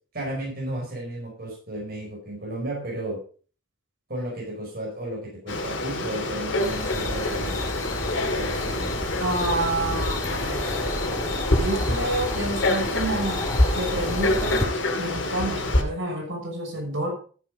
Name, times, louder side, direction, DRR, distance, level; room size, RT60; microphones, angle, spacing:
voice 1, 0.1-3.2 4.1-7.8 8.2-9.0, right 1 dB, 50° right, -3 dB, 5.2 m, -34 dB
Frog, 5.5-15.8, left 2 dB, 70° left, 2.3 m, -26 dB
sound 1, 6.6-14.6, left 1 dB, 15° left, 3.9 m, -32 dB
voice 2, 9.2-10.7 11.6-13.5 13.7-17.1, right 2 dB, 80° right, -1 dB, 6.5 m, -29 dB
14.0 x 7.4 x 5.1 m, 0.40 s
head